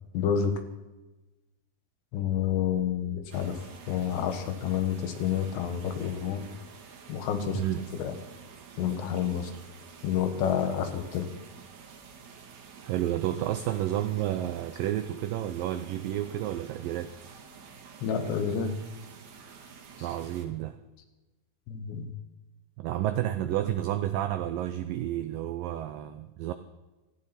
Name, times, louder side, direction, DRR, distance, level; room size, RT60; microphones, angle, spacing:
voice 1, 0.1-0.5 2.1-3.6 3.9-6.4 7.1-7.6 7.9-8.2 8.8-9.5 10.0-11.3 18.0-18.8 20.0-20.1 21.7-22.1, left 8 dB, 90° left, 7 dB, 3.7 m, -29 dB
sound 1, 3.3-20.4, right 6 dB, 55° right, 2.5 m, -49 dB
voice 2, 12.8-17.1 20.0-20.8 22.8-26.5, right 12 dB, 90° right, 10 dB, 1.9 m, -30 dB
16.5 x 15.0 x 4.3 m, 1.1 s
omnidirectional pair, 4.8 m